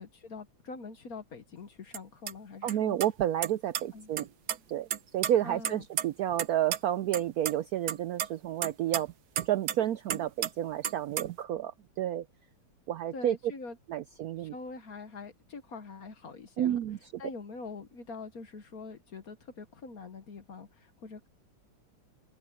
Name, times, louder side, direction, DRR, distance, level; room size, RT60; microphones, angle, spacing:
voice 1, 0.0-3.0 3.9-4.1 5.4-5.8 13.1-13.8 14.4-16.8 17.2-21.3, left 4 dB, 50° left, 1.6 m, -44 dB
sound 1, 1.9-2.0 2.3-2.4 2.7-2.8 3.0-3.8 4.2-4.6 4.9-6.5 6.7-6.8 7.1-7.5 7.9-9.8 10.1-10.5 10.8-11.4, right 10 dB, 60° right, 1.3 m, -32 dB
voice 2, 2.6-4.3 4.7-4.9 5.1-9.1 9.5-12.3 12.9-13.4 13.9-14.5 16.6-17.2, right 12 dB, 85° right, 0.8 m, -30 dB
omnidirectional pair, 2.1 m